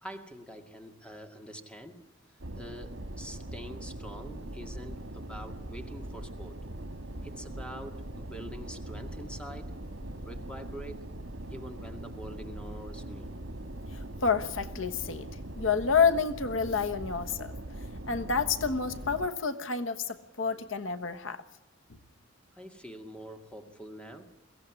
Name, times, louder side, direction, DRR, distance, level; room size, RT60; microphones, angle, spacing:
voice 1, 0.0-2.0 2.3-6.6 7.2-9.8 10.2-11.0 11.5-13.3 20.5-20.7 22.5-24.3, equal, 5° left, 2.1 m, -45 dB
sound 1, 2.4-19.3, right 1 dB, 90° right, 1.6 m, -41 dB
voice 2, 14.2-15.3 15.6-17.5 18.1-21.4, left 5 dB, 80° left, 1.3 m, -29 dB
22.5 x 16.5 x 9.7 m
head